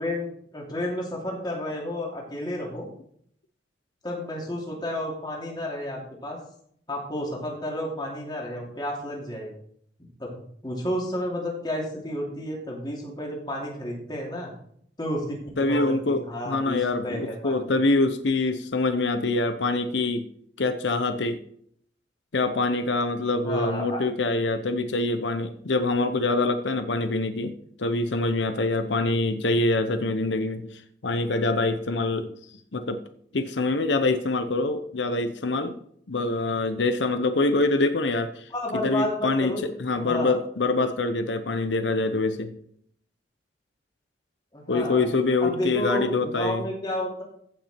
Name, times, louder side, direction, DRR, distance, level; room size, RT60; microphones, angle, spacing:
voice 1, 0.0-2.8 4.0-6.4 6.9-9.5 10.2-10.3 10.6-14.5 15.0-17.7 23.4-24.0 38.5-40.4 44.5-45.0 45.4-47.2, left 1 dB, 25° left, -2 dB, 2.8 m, -31 dB
voice 2, 15.6-20.3 20.6-21.4 22.3-27.5 27.8-32.3 32.7-33.0 33.3-35.8 36.1-42.6 44.7-46.6, left 2 dB, 90° left, 9 dB, 0.8 m, -25 dB
15.5 x 6.1 x 4.4 m, 0.66 s
head